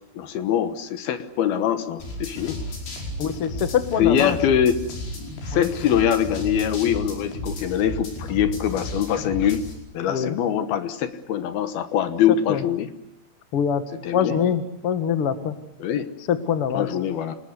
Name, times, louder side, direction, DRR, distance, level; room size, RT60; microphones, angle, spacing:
voice 1, 0.1-2.6 4.0-4.8 5.5-9.6 9.9-12.9 14.0-14.4 15.8-16.1 16.7-17.4, left 9 dB, 70° left, 11 dB, 3.0 m, -23 dB
sound 1, 2.0-9.7, left 1 dB, 85° left, 7.4 m, -33 dB
voice 2, 3.2-4.4 5.5-5.7 10.1-10.4 12.5-12.6 13.5-13.8 14.1-15.6 16.3-16.9, left 8 dB, 50° left, 10 dB, 1.9 m, -24 dB
28.0 x 20.0 x 9.6 m, 0.75 s
omnidirectional pair, 4.7 m